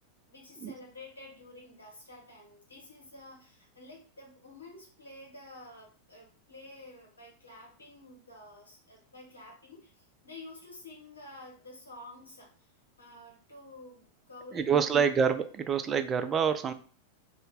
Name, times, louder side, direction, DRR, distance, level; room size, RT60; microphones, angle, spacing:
voice 1, 0.3-12.7 13.0-15.2, left 2 dB, 80° left, -1 dB, 1.0 m, -50 dB
voice 2, 14.5-16.7, right 7 dB, 25° right, 9 dB, 0.3 m, -27 dB
2.7 x 2.5 x 3.5 m, 0.41 s
figure-of-eight pair, 90°, 0 cm